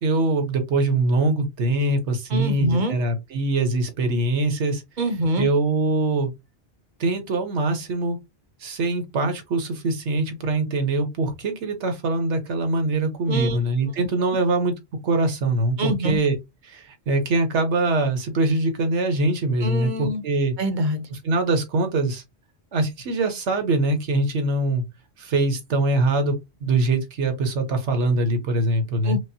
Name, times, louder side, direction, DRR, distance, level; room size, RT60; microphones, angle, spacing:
voice 1, 0.0-4.8 5.4-6.3 7.0-8.2 8.6-14.7 15.0-16.3 16.6-20.6 21.1-22.2 22.7-24.8 25.2-29.2, right 2 dB, 85° right, 1.3 m, -23 dB
voice 2, 2.3-3.0 5.0-5.5 13.3-13.6 15.8-16.2 19.6-20.2 20.6-21.1 29.1-29.2, equal, 50° right, 0.8 m, -24 dB
5.1 x 2.1 x 2.7 m
omnidirectional pair, 1.1 m